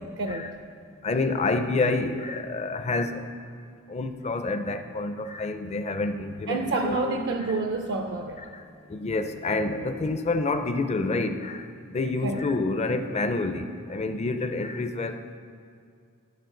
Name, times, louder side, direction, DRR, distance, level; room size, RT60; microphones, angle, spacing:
voice 1, 0.2-0.5 6.5-8.4 12.2-12.4, right 3 dB, 55° right, 3 dB, 0.4 m, -28 dB
voice 2, 1.0-3.2 3.9-7.2 8.9-11.6 11.9-15.2, left 3 dB, 30° left, 8 dB, 0.4 m, -28 dB
12.0 x 5.8 x 3.8 m, 2.2 s
head